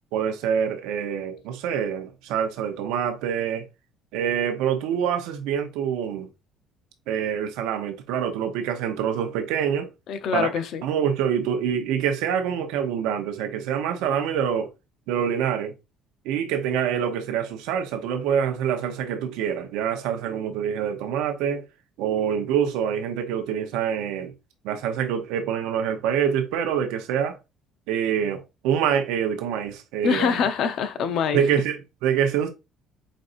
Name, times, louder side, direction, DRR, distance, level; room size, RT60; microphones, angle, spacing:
voice 1, 0.1-3.7 4.1-6.3 7.1-9.9 10.3-10.5 10.8-14.7 15.1-15.7 16.2-21.6 22.0-24.3 24.6-27.4 27.9-30.4 31.3-32.5, right 8 dB, 80° right, 0.8 m, -26 dB
voice 2, 10.1-10.8 30.0-31.4, left 7 dB, 65° left, 0.6 m, -24 dB
5.2 x 2.6 x 2.5 m
supercardioid pair, 75°, 0 cm